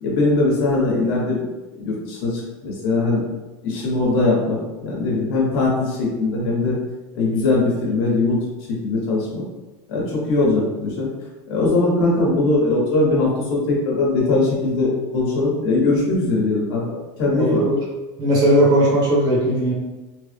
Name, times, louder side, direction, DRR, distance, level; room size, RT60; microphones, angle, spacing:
voice 1, 0.0-1.4 1.8-3.2 3.6-6.8 7.1-8.4 8.8-9.4 9.9-11.1 11.5-16.8 17.2-17.6, left 2 dB, 60° left, -4 dB, 1.2 m, -20 dB
voice 2, 17.3-17.8 18.2-19.7, right 1 dB, 30° right, -5 dB, 0.9 m, -17 dB
3.2 x 2.0 x 3.3 m, 1.2 s
supercardioid pair, 170°, 15 cm